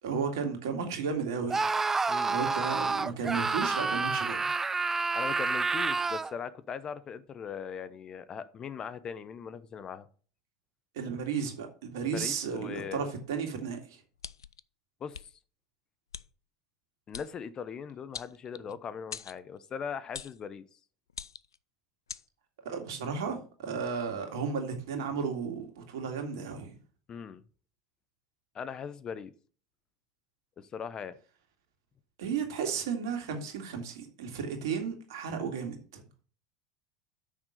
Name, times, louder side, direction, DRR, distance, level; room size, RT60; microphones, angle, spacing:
voice 1, 0.0-1.7 2.3-4.5 10.9-13.8 22.6-26.7 32.2-36.0, right 6 dB, 70° right, 2.2 m, -34 dB
Screaming, 1.5-6.3, right 4 dB, 15° right, 0.3 m, -29 dB
voice 2, 2.1-2.4 5.1-10.1 12.1-13.0 15.0-15.3 17.1-20.7 27.1-27.4 28.5-29.3 30.6-31.1, left 7 dB, 35° left, 0.8 m, -40 dB
sound 1, 14.2-14.6 15.1-15.3 16.1-16.3 17.1-17.3 18.1-18.7 19.1-19.4 20.1-20.4 21.1-21.6 22.1-22.2, left 7 dB, 85° left, 0.3 m, -42 dB
6.5 x 6.0 x 6.6 m
hypercardioid pair, 80°, 2 cm